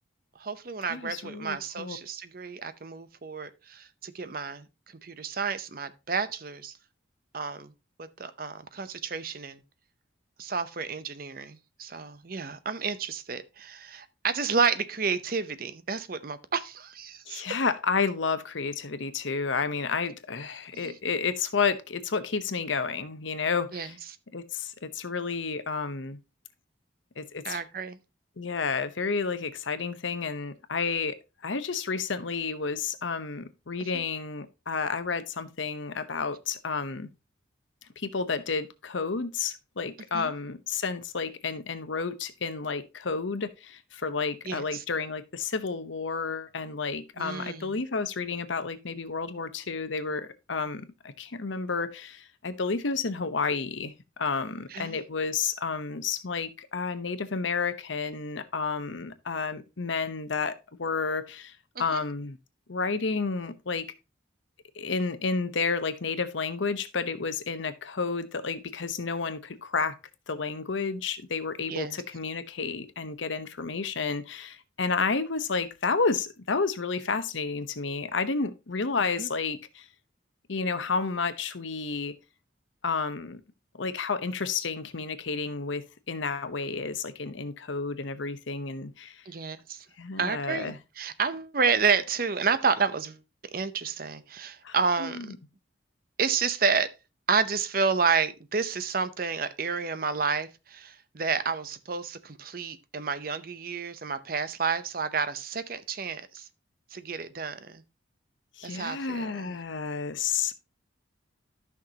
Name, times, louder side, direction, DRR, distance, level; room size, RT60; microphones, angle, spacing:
voice 1, 0.4-4.7 5.0-6.7 7.3-7.7 8.0-9.6 10.4-17.4 20.7-21.0 23.7-23.9 27.4-28.0 33.9-34.0 40.1-40.3 44.4-44.8 47.2-47.8 54.7-55.0 61.8-62.0 71.7-72.0 79.2-79.3 89.3-89.8 90.2-93.2 93.5-95.3 96.2-96.9 97.3-106.5 106.9-107.8 108.6-109.6, right 5 dB, 50° right, 0.7 m, -30 dB
voice 2, 0.9-2.0 17.3-23.9 24.3-26.2 27.2-27.6 28.4-31.2 31.4-37.1 38.0-61.5 61.8-62.4 62.7-63.9 64.8-69.9 70.3-79.8 80.5-82.1 82.8-83.4 83.8-89.2 90.0-90.8 94.6-94.7 95.0-95.3 108.6-110.5, left 4 dB, 80° left, 0.9 m, -31 dB
13.5 x 5.9 x 2.9 m
head